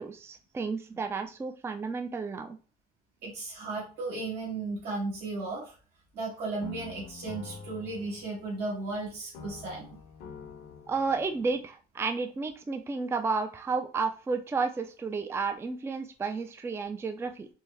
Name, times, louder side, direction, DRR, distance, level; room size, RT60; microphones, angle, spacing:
voice 1, 0.0-2.6 10.9-17.5, right 4 dB, 15° right, 8 dB, 0.3 m, -32 dB
voice 2, 3.2-5.7 6.1-10.0, right 3 dB, 75° right, -5 dB, 1.7 m, -35 dB
sound 1, 6.6-9.0 9.3-11.6, left 5 dB, 80° left, 0.9 m, -46 dB
4.5 x 2.1 x 3.4 m, 0.37 s
cardioid pair, 110°, 17 cm